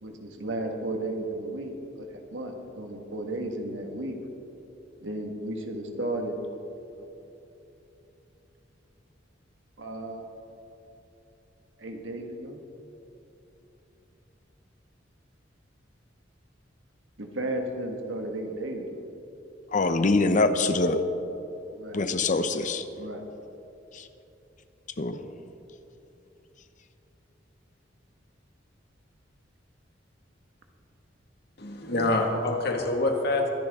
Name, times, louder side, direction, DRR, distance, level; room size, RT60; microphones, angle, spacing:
voice 1, 0.0-4.2 5.0-6.4 7.0-7.1 9.8-10.3 11.8-12.6 17.2-19.0 21.7-22.0 22.9-23.2, right 1 dB, 90° right, 3 dB, 1.6 m, -34 dB
voice 2, 19.7-21.0 21.9-22.8 23.9-24.1 25.0-25.2, left 3 dB, 45° left, 9 dB, 0.7 m, -24 dB
voice 3, 31.6-33.5, left 2 dB, 60° left, 2 dB, 1.9 m, -26 dB
24.0 x 10.0 x 3.7 m, 3.0 s
head